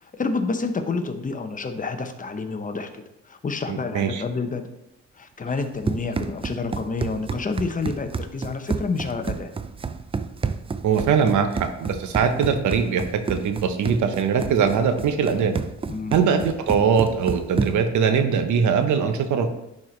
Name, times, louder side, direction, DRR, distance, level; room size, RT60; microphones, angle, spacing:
voice 1, 0.0-2.9 3.3-4.6 5.2-9.5 15.9-16.2, left 4 dB, 25° left, 7 dB, 0.8 m, -29 dB
voice 2, 3.7-4.2 10.8-15.5 16.1-19.5, right 6 dB, 75° right, 8 dB, 0.9 m, -21 dB
Run, 5.5-18.0, right 5 dB, 20° right, 0.4 m, -30 dB
10.5 x 4.4 x 3.2 m, 0.88 s
cardioid pair, 90°, 30 cm